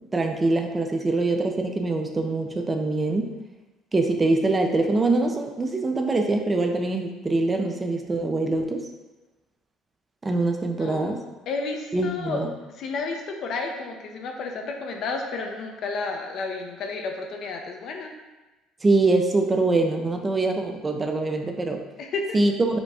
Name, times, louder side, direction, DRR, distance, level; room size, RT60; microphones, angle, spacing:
voice 1, 0.1-3.3 3.9-8.9 10.2-11.2 11.9-12.5 18.8-21.8 22.3-22.8, right 2 dB, 20° right, 4 dB, 0.5 m, -24 dB
voice 2, 11.5-12.4 12.7-18.1 22.0-22.3, left 3 dB, 60° left, 2 dB, 0.7 m, -31 dB
5.1 x 2.2 x 4.8 m, 1.1 s
supercardioid pair, 95°, 0 cm